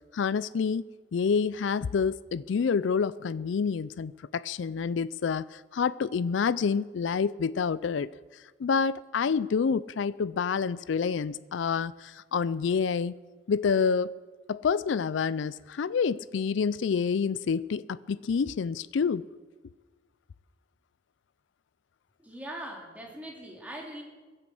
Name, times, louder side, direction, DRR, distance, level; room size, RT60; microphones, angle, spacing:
voice 1, 0.1-0.9 1.1-8.1 8.6-13.1 13.5-14.1 14.5-19.2, left 6 dB, 80° left, 17 dB, 0.4 m, -28 dB
voice 2, 22.2-24.0, right 1 dB, 10° right, -1 dB, 2.6 m, -41 dB
16.5 x 10.0 x 7.7 m, 1.3 s
head